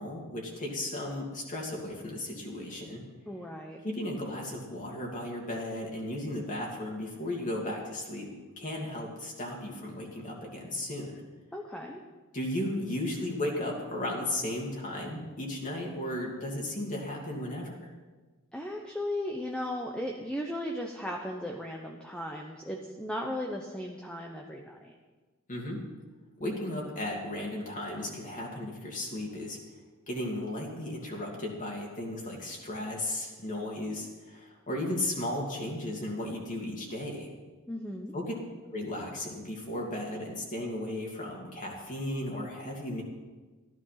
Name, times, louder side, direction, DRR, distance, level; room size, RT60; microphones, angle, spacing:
voice 1, 0.0-3.0 3.8-8.3 8.6-11.2 12.3-17.8 25.5-25.8 26.4-29.6 30.1-37.3 38.1-38.2 38.7-43.0, left 1 dB, 40° left, -2 dB, 2.6 m, -35 dB
voice 2, 3.3-3.8 11.5-12.0 18.5-24.9 37.7-38.2, left 1 dB, 5° left, 0 dB, 1.0 m, -36 dB
14.5 x 11.5 x 5.9 m, 1.3 s
head